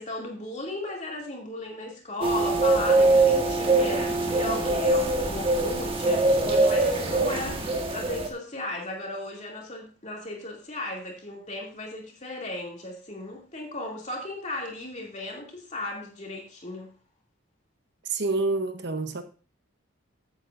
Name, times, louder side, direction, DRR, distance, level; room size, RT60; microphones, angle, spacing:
voice 1, 0.0-16.9, left 2 dB, 35° left, 2.5 m, -36 dB
sound 1, 2.2-8.3, right 2 dB, 25° right, 1.4 m, -23 dB
voice 2, 18.1-19.2, right 3 dB, 50° right, 0.9 m, -27 dB
14.5 x 8.2 x 2.5 m
head